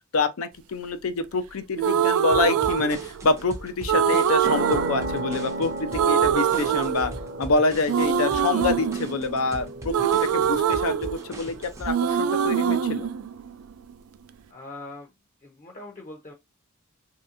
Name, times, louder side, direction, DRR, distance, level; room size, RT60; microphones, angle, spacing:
voice 1, 0.1-7.1 7.4-13.1, left 3 dB, 70° left, 0.5 m, -26 dB
sound 1, 1.8-3.4 3.9-5.6 5.9-7.5 7.9-11.6 11.9-13.9, right 8 dB, 75° right, 0.3 m, -24 dB
sound 2, 2.3-11.9, right 1 dB, 15° right, 0.5 m, -40 dB
sound 3, 4.4-11.6, right 2 dB, 50° right, 0.7 m, -35 dB
voice 2, 14.5-15.1 15.4-16.3, left 2 dB, 35° left, 0.6 m, -41 dB
3.2 x 2.8 x 2.4 m
head